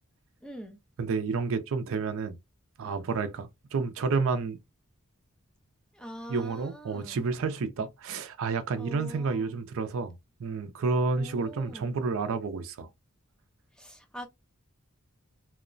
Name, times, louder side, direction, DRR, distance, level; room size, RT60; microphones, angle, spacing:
voice 1, 0.4-0.8 5.9-7.2 8.7-9.6 11.1-11.9 13.7-14.3, equal, 5° left, 0.5 m, -44 dB
voice 2, 1.0-2.4 2.8-4.6 6.3-12.9, right 4 dB, 65° right, 0.4 m, -30 dB
2.8 x 2.1 x 2.4 m
head